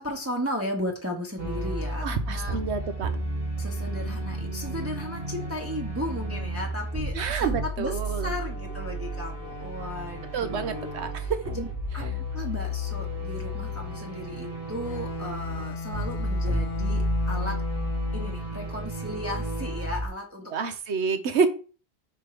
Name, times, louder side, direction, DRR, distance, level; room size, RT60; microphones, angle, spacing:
voice 1, 0.0-2.6 3.6-11.7 11.9-12.1 12.3-17.6 18.1-20.7, left 1 dB, 15° right, 0 dB, 1.1 m, -35 dB
sound 1, 1.4-20.1, equal, 60° right, 1.9 m, -32 dB
voice 2, 2.0-3.1 7.1-8.3 10.3-11.4 20.5-21.5, right 5 dB, 80° right, 10 dB, 1.1 m, -28 dB
Bowed string instrument, 14.8-18.6, left 3 dB, 50° left, 0.4 m, -36 dB
5.4 x 4.1 x 5.0 m, 0.37 s
omnidirectional pair, 1.1 m